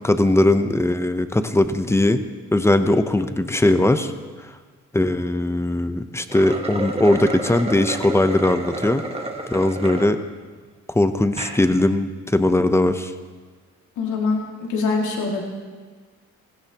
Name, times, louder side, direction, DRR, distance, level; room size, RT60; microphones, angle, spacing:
voice 1, 0.0-2.2 2.5-4.1 4.9-9.0 9.5-10.2 10.9-13.1, left 1 dB, 10° left, 10 dB, 0.8 m, -19 dB
sound 1, 6.2-10.1 10.6-10.7 11.2-11.6, right 2 dB, 20° right, 1.5 m, -30 dB
voice 2, 14.0-15.4, left 4 dB, 75° left, -1 dB, 2.4 m, -24 dB
16.5 x 16.0 x 3.0 m, 1.5 s
cardioid pair, 90°, 30 cm